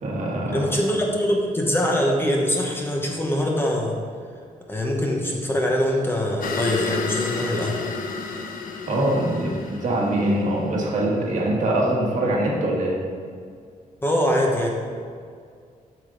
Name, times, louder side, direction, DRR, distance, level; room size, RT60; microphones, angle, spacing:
voice 1, 0.0-0.8 8.9-13.0, right 1 dB, 60° right, -3 dB, 1.6 m, -23 dB
voice 2, 0.5-4.0 4.7-7.8 14.0-14.7, equal, 15° left, -1 dB, 0.9 m, -23 dB
sound 1, 6.4-11.0, left 4 dB, 75° left, 0.8 m, -31 dB
7.7 x 6.7 x 3.9 m, 2.1 s
wide cardioid pair, 155°, 14 cm